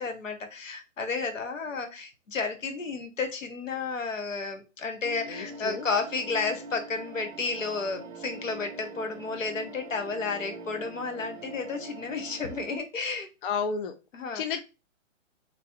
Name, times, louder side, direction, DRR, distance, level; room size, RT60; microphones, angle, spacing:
voice 1, 0.0-13.3 14.1-14.6, left 4 dB, 80° left, 6 dB, 1.0 m, -32 dB
sound 1, 5.0-12.8, right 2 dB, 25° right, 0.6 m, -43 dB
voice 2, 5.3-5.8 13.4-13.9 14.3-14.6, left 6 dB, 45° left, 7 dB, 0.5 m, -31 dB
3.1 x 2.8 x 2.8 m, 0.28 s
hypercardioid pair, 130°, 38 cm